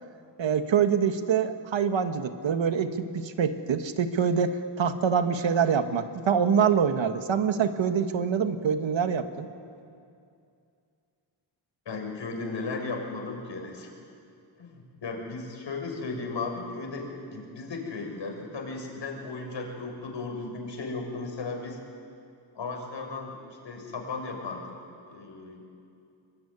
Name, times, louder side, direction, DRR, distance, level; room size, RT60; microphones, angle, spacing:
voice 1, 0.4-9.5, right 7 dB, 90° right, 8 dB, 1.6 m, -25 dB
voice 2, 11.8-13.9 14.6-21.8 22.5-23.4 23.6-24.7 25.1-25.6, left 3 dB, 75° left, 1 dB, 6.4 m, -35 dB
24.5 x 23.5 x 9.9 m, 2.5 s
wide cardioid pair, 105°, 44 cm